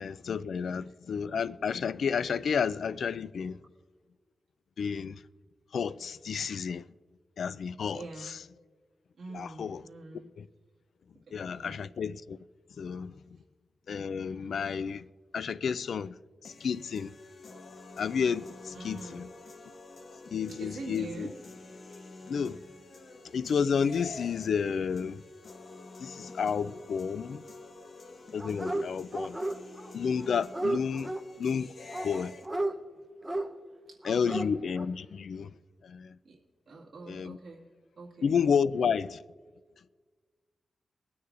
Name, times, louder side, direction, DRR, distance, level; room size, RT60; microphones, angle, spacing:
voice 1, 0.0-3.6 4.8-5.2 5.7-6.8 7.4-8.0 9.3-9.8 10.4-10.5 11.3-12.4 12.8-13.1 13.9-15.1 15.3-16.1 16.4-17.1 18.0-19.3 20.3-21.3 22.3-22.6 23.3-25.2 26.0-27.4 28.3-29.4 29.9-31.1 31.4-31.7 32.0-32.3 34.0-35.5 35.8-36.1 37.1-37.4 38.2-39.2, left 6 dB, 70° left, 0.3 m, -31 dB
voice 2, 7.9-8.4 9.1-10.3 11.5-11.9 18.7-19.3 20.5-21.4 33.7-34.5 36.2-36.4 36.7-37.7 38.0-38.3, right 3 dB, 60° right, 2.2 m, -45 dB
sound 1, 16.4-32.4, left 3 dB, 50° left, 0.9 m, -48 dB
Dog, 28.4-28.8 29.1-29.9 30.2-31.2 31.9-32.7 33.2-33.5 34.0-34.5 34.8-34.9, right 2 dB, 15° right, 0.8 m, -33 dB
22.5 x 9.5 x 2.5 m
wide cardioid pair, 135°, 0 cm